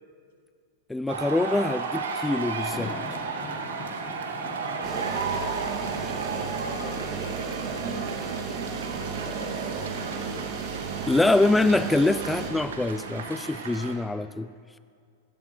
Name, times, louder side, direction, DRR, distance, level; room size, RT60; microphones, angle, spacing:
voice 1, 0.9-2.9 11.1-14.5, left 2 dB, 5° left, 13 dB, 0.4 m, -24 dB
sound 1, 1.1-14.0, right 5 dB, 90° right, 1.9 m, -34 dB
sound 2, 2.7-13.4, left 6 dB, 30° left, 1.1 m, -46 dB
voice 2, 4.5-5.7 6.2-10.5, left 5 dB, 70° left, -2 dB, 3.0 m, -44 dB
sound 3, 4.8-12.5, right 6 dB, 40° right, 2.6 m, -34 dB
17.5 x 16.5 x 3.2 m, 2.3 s
hypercardioid pair, 115°, 0 cm